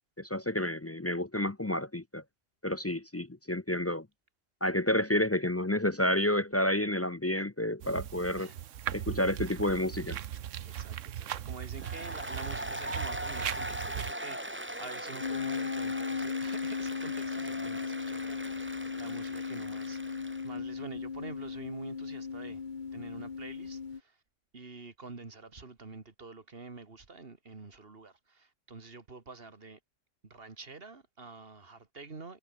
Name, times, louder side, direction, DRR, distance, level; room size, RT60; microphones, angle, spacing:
voice 1, 0.2-2.2 2.6-4.1 4.6-8.5 8.9-10.2, left 1 dB, 20° left, 0.4 m, -30 dB
sound 1, 7.8-14.1, right 10 dB, 75° right, 1.2 m, -38 dB
voice 2, 8.4-8.8 10.6-22.6 22.9-24.2 24.5-29.8 30.2-32.4, right 4 dB, 50° right, 2.2 m, -47 dB
Applause, 11.8-20.5, right 1 dB, 10° right, 2.7 m, -40 dB
sound 2, 15.2-24.0, left 5 dB, 40° left, 1.2 m, -36 dB
omnidirectional pair, 1.3 m